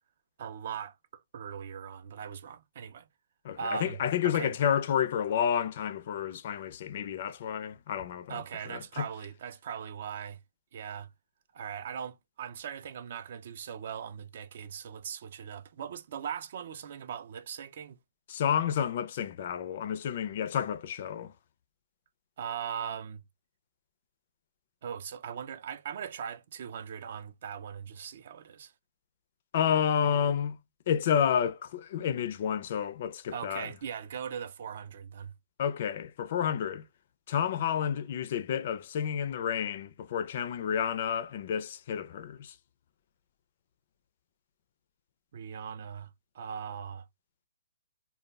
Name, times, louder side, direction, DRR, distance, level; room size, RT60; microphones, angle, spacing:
voice 1, 0.4-3.1 3.6-4.6 8.3-10.4 10.7-11.1 11.5-18.0 22.4-23.2 24.8-28.7 33.3-35.3 45.3-47.1, right 7 dB, 50° right, 0.3 m, -40 dB
voice 2, 3.4-8.4 8.7-9.0 18.3-21.3 29.5-30.6 30.9-33.7 35.6-36.8 37.3-42.5, left 8 dB, 45° left, 0.4 m, -30 dB
2.2 x 2.1 x 3.4 m
hypercardioid pair, 160°, 0 cm